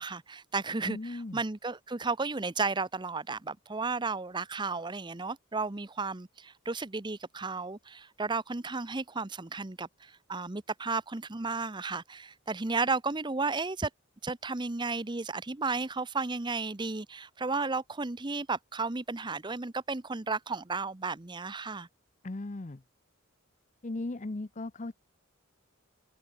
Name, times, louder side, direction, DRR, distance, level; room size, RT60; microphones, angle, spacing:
voice 1, 0.0-13.9 14.2-21.9, right 4 dB, 20° right, 0.7 m, -33 dB
voice 2, 0.8-1.4 22.2-22.8 23.8-25.0, left 2 dB, 35° left, 0.7 m, -37 dB
head